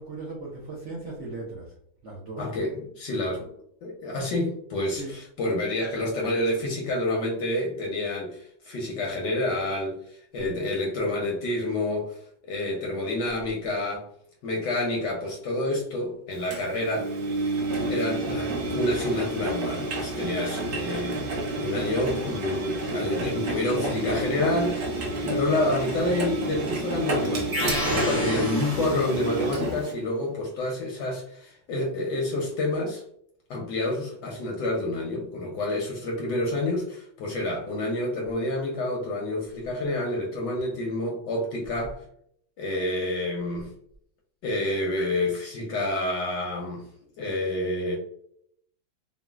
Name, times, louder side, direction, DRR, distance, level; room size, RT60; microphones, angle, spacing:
voice 1, 0.0-1.7 2.0-2.5 5.0-5.2 10.3-10.6, right 3 dB, 80° right, -4 dB, 0.6 m, -37 dB
voice 2, 2.4-3.5 3.8-14.1 14.4-17.1 17.9-24.9 25.2-33.0 33.5-42.0 42.6-43.7 44.4-46.9 47.2-48.0, left 1 dB, 75° left, -1 dB, 1.1 m, -28 dB
Engine, 16.5-29.9, right 2 dB, 60° right, 1.1 m, -29 dB
sound 1, 27.5-29.4, equal, 25° right, 0.8 m, -30 dB
3.9 x 2.0 x 2.2 m, 0.68 s
omnidirectional pair, 2.2 m